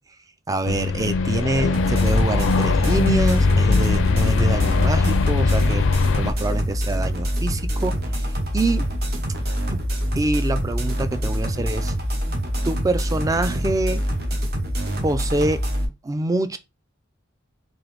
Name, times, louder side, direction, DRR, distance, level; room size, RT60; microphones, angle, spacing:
voice 1, 0.5-5.8 6.2-8.0 8.5-8.9 9.7-9.8 10.2-11.9 12.6-14.0 15.0-15.6 16.0-16.6, right 2 dB, 15° right, 0.3 m, -25 dB
sound 1, 0.6-6.3, left 4 dB, 65° left, 0.4 m, -20 dB
sound 2, 1.7-15.9, equal, 50° right, 1.0 m, -25 dB
3.8 x 2.9 x 3.3 m
head